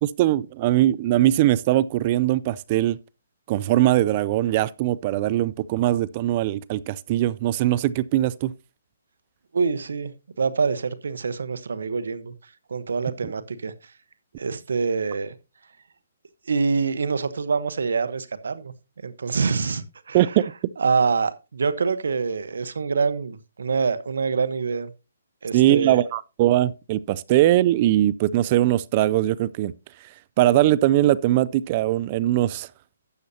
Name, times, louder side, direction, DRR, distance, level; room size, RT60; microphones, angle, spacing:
voice 1, 0.0-3.0 3.5-8.5 20.1-20.5 25.5-29.7 30.4-32.7, right 14 dB, 35° right, 0.4 m, -21 dB
voice 2, 9.5-13.9 14.4-15.3 16.5-18.7 19.0-20.5 20.8-24.9 25.4-26.0, right 5 dB, 75° right, 1.1 m, -26 dB
12.0 x 8.1 x 2.8 m
hypercardioid pair, 150°, 0 cm